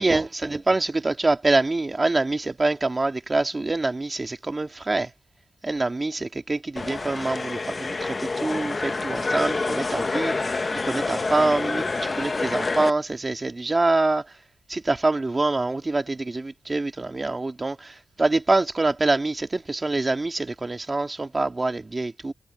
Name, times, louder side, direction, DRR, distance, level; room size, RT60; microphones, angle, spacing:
voice 1, 0.0-5.1 5.6-10.5 10.8-11.8 12.2-14.2 14.7-22.3, right 2 dB, 20° right, 2.0 m, -25 dB
sound 1, 6.8-12.9, left 3 dB, 25° left, 1.0 m, -27 dB
wide cardioid pair, 170°, 0 cm